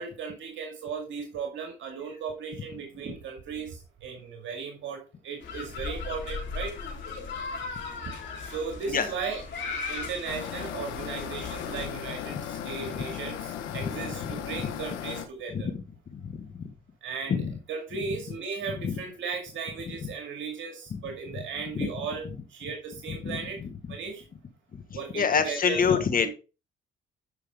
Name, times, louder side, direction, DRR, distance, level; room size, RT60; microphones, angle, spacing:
voice 1, 0.0-6.8 8.4-9.4 9.9-15.7 17.0-23.6 23.9-24.2 24.9-26.3, right 5 dB, 75° right, 2 dB, 2.1 m, -36 dB
sound 1, 5.4-11.9, left 4 dB, 65° left, 3.6 m, -37 dB
sound 2, 10.3-15.3, left 9 dB, 90° left, 1.2 m, -36 dB
voice 2, 16.1-16.5 17.3-17.5 18.8-18.9 20.9-21.0 21.7-21.9 23.1-23.7 25.1-26.3, left 6 dB, 45° left, 9 dB, 1.5 m, -26 dB
11.0 x 5.6 x 3.6 m, 0.31 s
cardioid pair, 90°, 20 cm